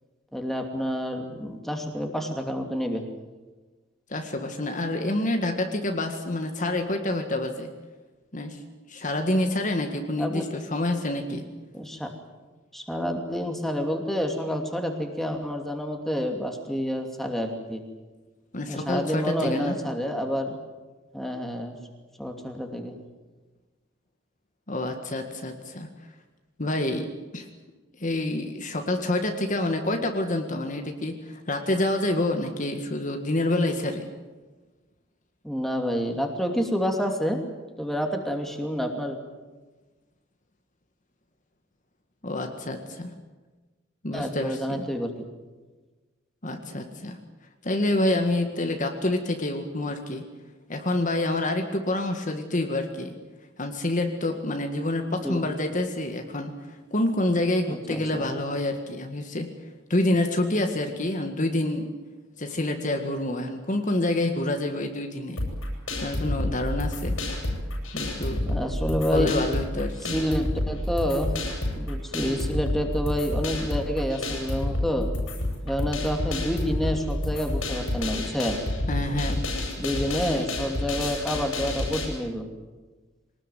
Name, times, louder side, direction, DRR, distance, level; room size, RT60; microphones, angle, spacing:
voice 1, 0.3-3.0 10.2-10.4 11.7-12.1 12.7-17.8 18.7-20.6 21.1-21.8 22.2-22.9 35.4-37.4 37.8-39.2 44.1-45.1 55.2-55.4 57.7-58.3 68.5-69.3 70.0-71.3 71.7-75.1 75.6-78.7 79.8-82.5, equal, ahead, 3 dB, 2.6 m, -28 dB
voice 2, 4.1-7.7 8.3-8.6 8.9-11.5 18.5-19.8 24.7-25.9 26.6-27.5 28.0-34.1 42.2-43.2 44.0-44.9 46.4-47.2 47.6-50.2 50.7-53.2 53.6-59.5 59.9-61.9 62.4-65.4 66.0-67.2 67.9-68.6 69.1-70.1 78.9-79.5 80.0-80.5, left 1 dB, 40° left, 5 dB, 1.9 m, -27 dB
sound 1, 65.4-82.0, left 1 dB, 85° left, 7.5 m, -29 dB
23.5 x 19.5 x 9.3 m, 1.3 s
head